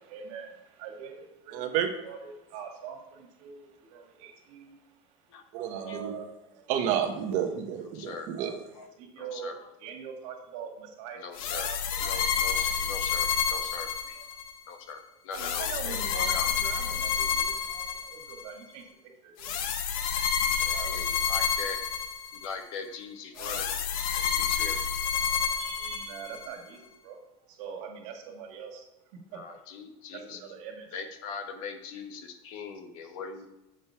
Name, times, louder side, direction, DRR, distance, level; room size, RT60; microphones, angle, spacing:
voice 1, 0.0-6.4 6.6-6.7 8.3-8.6 9.0-9.5 9.8-12.7 14.2-14.3 15.3-19.7 20.6-21.3 23.3-23.6 25.6-27.2 27.5-28.9 29.1-29.6 30.1-31.0, right 7 dB, 65° right, 2 dB, 2.0 m, -43 dB
voice 2, 1.5-1.9 5.5-6.1 6.7-8.5, right 9 dB, 45° right, 5 dB, 1.0 m, -30 dB
voice 3, 7.8-8.3 8.7-8.9 9.2-9.7 11.2-11.7 12.0-14.2 14.7-16.5 20.6-21.8 22.3-23.7 24.0-24.8 29.3-30.4 30.9-33.5, left 5 dB, 70° left, 6 dB, 1.2 m, -41 dB
sound 1, 11.3-14.5 15.3-18.4 19.4-22.5 23.4-26.5, left 7 dB, 85° left, 0.9 m, -29 dB
7.5 x 5.3 x 5.6 m, 1.0 s
cardioid pair, 170°, 18 cm